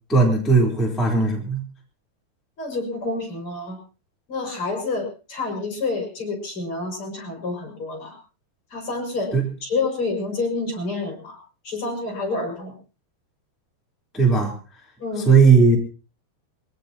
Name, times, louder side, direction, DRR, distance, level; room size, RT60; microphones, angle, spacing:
voice 1, 0.1-1.6 9.3-9.4 14.1-14.5 15.2-15.8, right 4 dB, ahead, -3 dB, 3.3 m, -17 dB
voice 2, 2.6-3.8 4.3-8.2 8.7-9.3 9.6-11.4 11.6-12.7 15.0-15.3, left 3 dB, 30° left, 2 dB, 6.2 m, -28 dB
24.0 x 17.5 x 3.0 m, 0.35 s
omnidirectional pair, 4.8 m